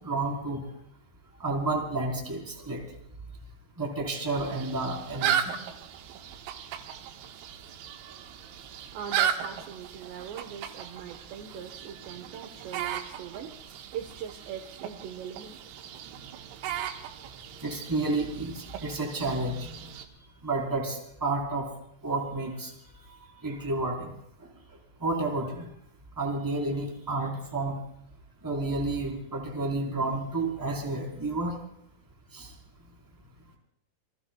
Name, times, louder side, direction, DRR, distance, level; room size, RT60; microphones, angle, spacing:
voice 1, 0.0-0.6 1.4-2.8 3.8-5.5 17.6-19.7 20.4-21.7 22.0-22.7 23.4-24.1 25.0-25.7 26.2-27.8 28.4-31.5 32.3-32.5, right 2 dB, 5° right, -1 dB, 3.3 m, -30 dB
sound 1, 4.3-20.1, right 9 dB, 85° right, 4.1 m, -36 dB
voice 2, 8.9-15.6, right 8 dB, 70° right, 5 dB, 2.9 m, -41 dB
29.0 x 20.5 x 2.3 m, 0.74 s
omnidirectional pair, 6.0 m